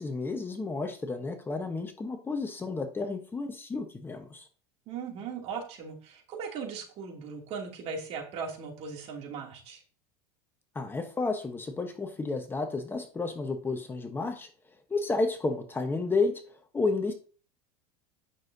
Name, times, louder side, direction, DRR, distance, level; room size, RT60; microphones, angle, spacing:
voice 1, 0.0-4.5 10.7-14.5 14.9-17.1, left 3 dB, 15° left, 6 dB, 1.0 m, -31 dB
voice 2, 4.9-9.8, right 5 dB, 50° right, 0 dB, 2.7 m, -38 dB
9.5 x 6.3 x 2.7 m, 0.39 s
supercardioid pair, 120°, 14 cm